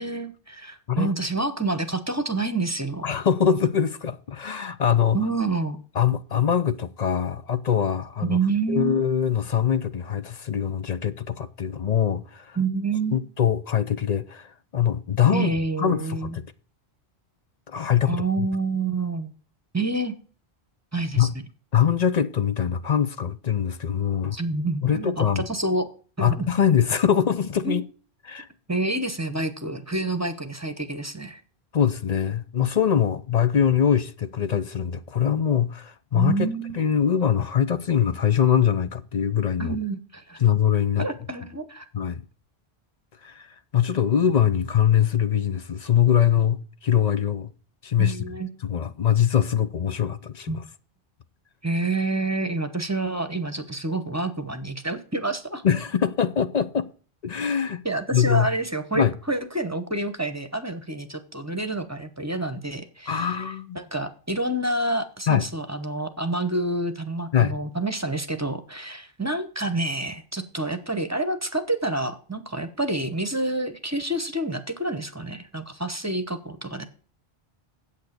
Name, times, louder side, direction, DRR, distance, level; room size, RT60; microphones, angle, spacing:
voice 1, 0.0-3.1 5.1-5.8 8.2-9.0 12.6-13.2 15.3-16.4 18.1-19.3 19.7-20.2 20.9-21.3 24.3-25.9 26.2-26.5 27.6-27.8 28.7-31.4 36.1-36.8 39.6-40.4 41.0-41.8 48.0-48.5 50.5-50.6 51.6-55.6 57.8-63.5 63.7-76.9, right 2 dB, 15° right, 0.9 m, -28 dB
voice 2, 3.0-5.2 6.0-8.4 8.7-12.6 13.1-15.5 15.8-16.4 17.7-18.5 21.2-21.3 21.7-24.4 24.8-25.4 26.2-27.8 28.2-28.5 31.7-39.8 40.4-41.1 41.9-42.2 43.2-43.5 43.7-47.5 47.8-48.2 48.6-50.6 55.6-56.9 57.2-57.8 58.1-58.5 58.9-59.1 63.1-63.8 65.3-65.5 67.3-67.6, left 8 dB, 45° left, 0.6 m, -23 dB
8.4 x 8.0 x 6.6 m
omnidirectional pair, 1.1 m